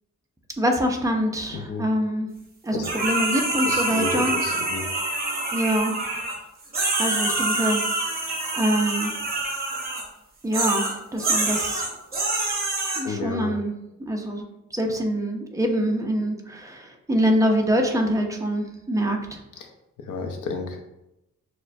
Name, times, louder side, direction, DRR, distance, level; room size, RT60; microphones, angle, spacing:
voice 1, 0.6-2.3 2.6-4.3 5.5-5.9 7.0-7.8 8.2-9.1 10.4-11.8 13.0-13.7 14.1-19.4, equal, 10° right, 2 dB, 0.5 m, -25 dB
voice 2, 1.5-1.9 2.7-2.8 3.6-4.9 13.0-13.5 19.6-19.7 20.0-20.9, left 4 dB, 85° left, 4 dB, 0.7 m, -31 dB
sound 1, 2.8-6.3 6.7-10.0 10.5-13.0, right 2 dB, 30° right, 0.9 m, -26 dB
6.3 x 2.1 x 2.5 m, 0.89 s
wide cardioid pair, 160°, 30 cm